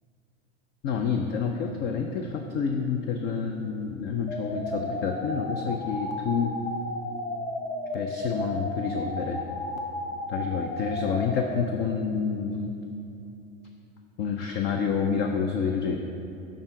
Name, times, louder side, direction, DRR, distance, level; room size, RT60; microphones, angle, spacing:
voice 1, 0.8-6.6 7.9-9.4 10.3-12.7 14.2-16.0, left 6 dB, 25° left, 4 dB, 0.4 m, -28 dB
sound 1, 4.3-11.6, left 1 dB, 85° left, 1.0 m, -33 dB
10.5 x 3.8 x 4.4 m, 2.7 s
hypercardioid pair, 95°, 39 cm